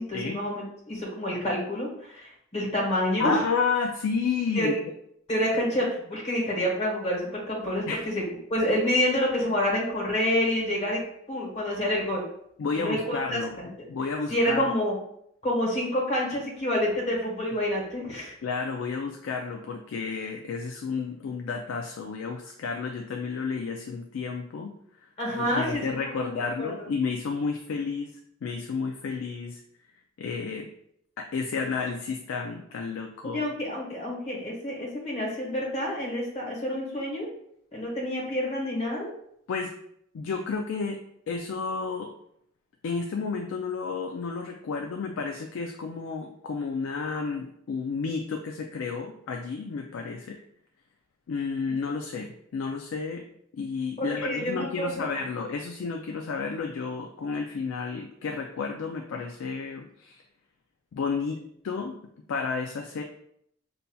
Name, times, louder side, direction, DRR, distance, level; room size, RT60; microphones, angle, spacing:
voice 1, 0.0-3.4 4.5-4.8 5.3-8.2 8.5-11.0 11.3-12.2 12.8-13.7 14.3-15.0 15.4-18.4 25.2-26.7 33.2-37.3 37.7-39.1 51.7-51.8 54.0-55.0, equal, 30° left, -4 dB, 1.2 m, -28 dB
voice 2, 3.2-4.7 7.9-8.1 12.6-13.6 13.9-14.7 18.4-24.7 25.4-28.1 28.4-29.6 30.2-30.7 31.2-33.4 39.5-39.7 40.1-41.0 41.3-42.1 42.8-50.4 51.3-53.2 53.5-60.2 60.9-61.4 61.6-62.0 62.3-63.0, left 5 dB, 75° left, 3 dB, 0.4 m, -31 dB
5.5 x 2.7 x 2.3 m, 0.72 s
head